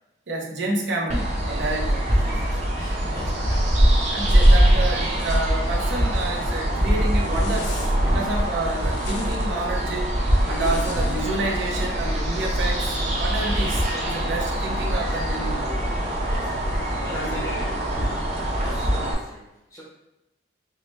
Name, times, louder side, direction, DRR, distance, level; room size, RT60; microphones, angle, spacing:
voice 1, 0.3-2.0 3.0-3.1 4.1-10.1 10.5-15.6 17.1-17.5 18.0-18.2, right 2 dB, 70° right, -2 dB, 0.8 m, -29 dB
sound 1, 1.1-19.1, right 1 dB, 40° right, 0.8 m, -23 dB
voice 2, 1.9-3.6 13.4-13.8 16.2-17.6 18.5-19.8, left 1 dB, 15° left, -6 dB, 0.7 m, -40 dB
Zipper (clothing), 4.2-4.6 5.0-5.5 6.0-6.7 7.0-7.9 8.6-9.5 10.3-11.3, left 3 dB, 65° left, 0.5 m, -39 dB
4.7 x 2.1 x 3.0 m, 0.92 s
head